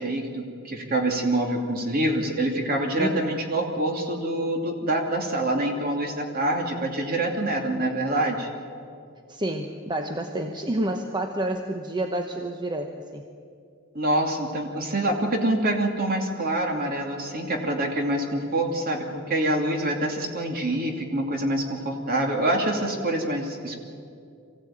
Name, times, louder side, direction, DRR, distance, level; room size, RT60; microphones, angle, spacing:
voice 1, 0.0-8.5 13.9-23.8, right 1 dB, 45° right, 2 dB, 2.7 m, -26 dB
voice 2, 3.0-3.3 9.3-13.2, right 1 dB, 20° right, 5 dB, 0.9 m, -29 dB
24.0 x 16.0 x 8.9 m, 2.4 s
head